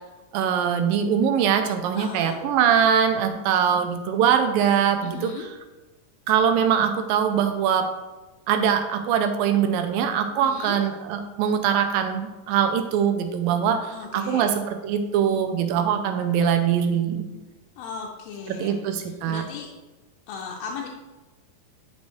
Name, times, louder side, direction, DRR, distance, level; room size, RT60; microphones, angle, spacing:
voice 1, 0.3-5.3 6.3-7.9 8.5-17.4 18.6-19.4, right 8 dB, 80° right, 7 dB, 2.3 m, -22 dB
voice 2, 2.0-2.4 5.0-5.5 10.4-10.8 13.9-14.5 17.8-18.8 19.1-19.7 20.3-20.9, left 6 dB, 85° left, -1 dB, 2.5 m, -36 dB
9.6 x 5.2 x 3.2 m, 1.1 s
omnidirectional pair, 4.2 m